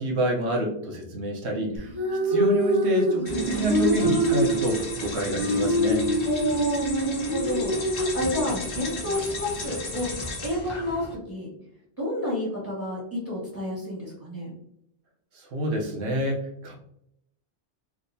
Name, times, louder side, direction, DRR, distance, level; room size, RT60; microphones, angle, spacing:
voice 1, 0.0-1.9 2.2-6.1 15.3-16.7, equal, 75° right, 1 dB, 1.0 m, -27 dB
sound 1, 1.8-8.8, equal, 30° right, 0.5 m, -25 dB
sound 2, 3.3-11.2, left 2 dB, 55° left, 1.0 m, -35 dB
voice 2, 6.2-10.1 10.4-11.5 12.0-14.5, left 1 dB, 10° left, -6 dB, 1.5 m, -30 dB
3.5 x 2.8 x 2.6 m, 0.75 s
omnidirectional pair, 1.2 m